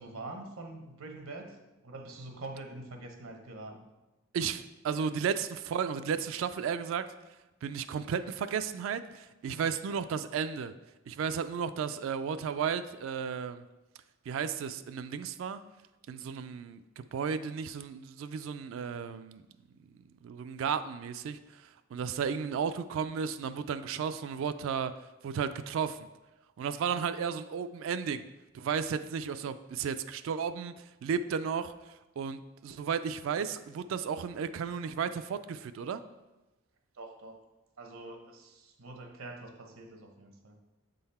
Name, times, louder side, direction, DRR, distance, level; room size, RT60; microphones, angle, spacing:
voice 1, 0.0-1.6 1.8-3.8 36.9-37.4 37.8-40.6, right 2 dB, 85° right, 4 dB, 0.9 m, -45 dB
voice 2, 4.3-7.0 7.6-10.7 11.1-13.6 14.3-15.6 16.1-19.4 19.8-19.9 20.2-24.9 25.2-26.0 26.6-28.2 28.5-36.0, right 6 dB, 70° right, 10 dB, 0.3 m, -34 dB
7.0 x 3.9 x 4.1 m, 1.0 s
head